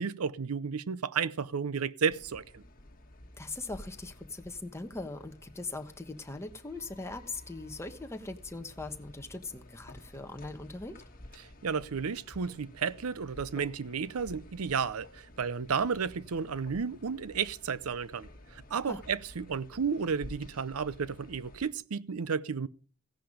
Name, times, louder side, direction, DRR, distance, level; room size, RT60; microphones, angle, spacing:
voice 1, 0.0-2.6 11.4-22.7, right 6 dB, 90° right, 0.6 m, -32 dB
sound 1, 2.1-21.7, left 1 dB, 40° left, 1.8 m, -52 dB
voice 2, 3.4-11.0 18.8-19.0, left 2 dB, 15° left, 1.1 m, -40 dB
15.5 x 10.5 x 5.1 m
head